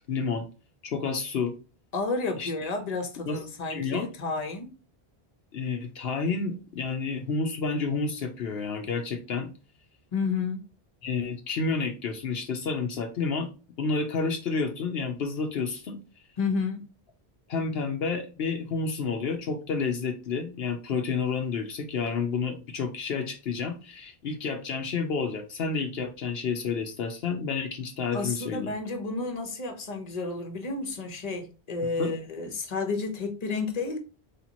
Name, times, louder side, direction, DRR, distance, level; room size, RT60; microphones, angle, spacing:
voice 1, 0.1-0.5 0.8-1.5 2.4-2.5 3.3-3.4 3.7-4.1 5.5-9.5 11.0-13.5 13.8-16.0 17.5-28.7 32.0-32.1, left 4 dB, 75° left, 0.9 m, -30 dB
voice 2, 1.9-4.7 10.1-10.7 16.4-16.8 28.1-34.0, left 4 dB, 40° left, 1.0 m, -31 dB
4.2 x 3.3 x 2.9 m
omnidirectional pair, 1.1 m